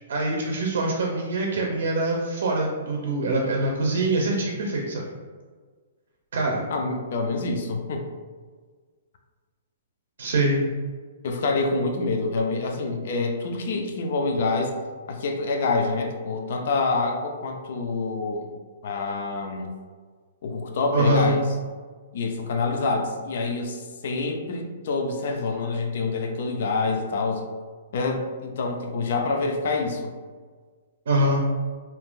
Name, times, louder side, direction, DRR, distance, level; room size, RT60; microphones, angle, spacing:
voice 1, 0.1-5.0 6.3-6.6 10.2-10.7 20.9-21.3 31.1-31.4, right 2 dB, 75° right, 0 dB, 0.5 m, -24 dB
voice 2, 6.7-8.0 11.2-14.8 15.1-18.5 18.8-19.7 20.4-21.4 22.1-27.5 27.9-30.1, left 3 dB, 60° left, 3 dB, 0.5 m, -26 dB
2.7 x 2.4 x 3.6 m, 1.5 s
hypercardioid pair, 165°, 0 cm